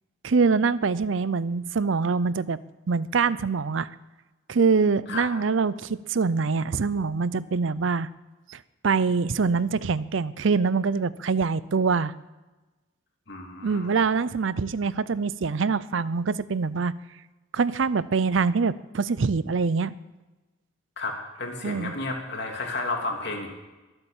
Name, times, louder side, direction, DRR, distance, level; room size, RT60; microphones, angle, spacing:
voice 1, 0.2-2.6 2.9-3.9 4.5-8.1 8.5-12.1 13.6-16.9 17.5-19.9 21.6-21.9, right 4 dB, 70° right, 17 dB, 0.5 m, -24 dB
voice 2, 13.3-14.0 21.0-23.5, left 2 dB, 60° left, 1 dB, 3.1 m, -32 dB
22.5 x 8.1 x 7.2 m, 1.1 s
head